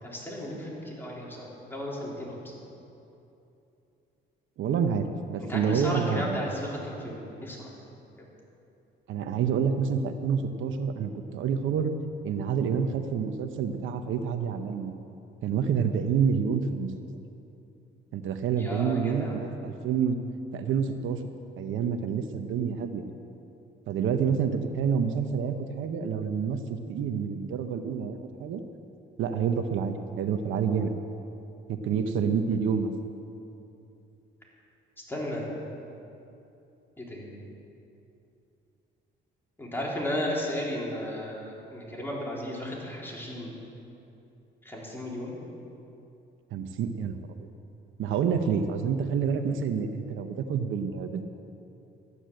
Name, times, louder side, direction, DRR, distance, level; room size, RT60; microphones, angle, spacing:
voice 1, 0.0-2.6 5.4-7.7 18.5-19.4 35.1-35.5 37.0-37.4 39.6-43.6 44.6-45.3, left 1 dB, 10° left, -4 dB, 4.0 m, -34 dB
voice 2, 4.6-6.4 9.1-11.9 12.2-14.9 15.4-16.9 18.1-20.2 20.5-21.2 21.6-23.1 23.9-28.6 29.2-30.9 31.7-32.9 46.5-47.2 48.0-51.3, right 6 dB, 80° right, 7 dB, 0.9 m, -28 dB
14.0 x 9.9 x 7.7 m, 2.8 s
cardioid pair, 90°, 20 cm